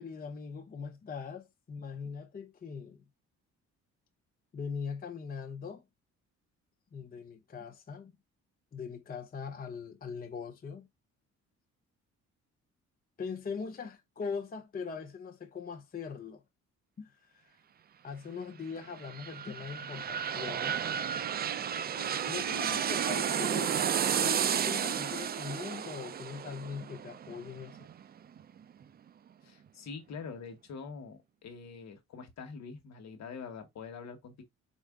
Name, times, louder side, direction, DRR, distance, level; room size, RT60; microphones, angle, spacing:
voice 1, 0.0-3.0 4.5-5.8 6.9-8.2 8.7-10.9 13.2-16.4 17.0-17.5 18.0-20.8 22.3-27.9, left 6 dB, 30° left, 0.6 m, -41 dB
sound 1, 18.8-28.4 28.8-28.9, right 8 dB, 35° right, 0.4 m, -32 dB
sound 2, 20.9-26.6, right 5 dB, 60° right, 0.9 m, -47 dB
voice 2, 29.4-34.4, left 5 dB, 60° left, 1.1 m, -45 dB
4.4 x 2.5 x 3.5 m
cardioid pair, 90°, 30 cm